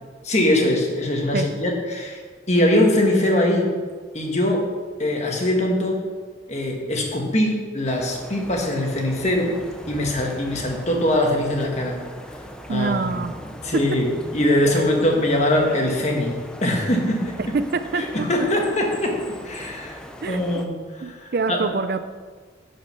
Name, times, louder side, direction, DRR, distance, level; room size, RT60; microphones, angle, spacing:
voice 1, 0.2-2.2 2.5-3.7 4.1-4.6 5.0-6.0 6.5-9.5 9.9-12.0 12.7-13.2 13.6-14.1 14.3-16.3 16.6-17.4 17.9-19.2 19.4-21.6, left 1 dB, 35° left, 1 dB, 1.5 m, -22 dB
sound 1, 7.8-20.7, equal, 5° left, 0.5 m, -39 dB
voice 2, 12.7-13.3 13.7-14.0 14.6-14.8 17.4-18.3 20.2-20.6 21.0-22.0, right 4 dB, 50° right, 10 dB, 0.4 m, -25 dB
10.0 x 5.1 x 6.1 m, 1.5 s
head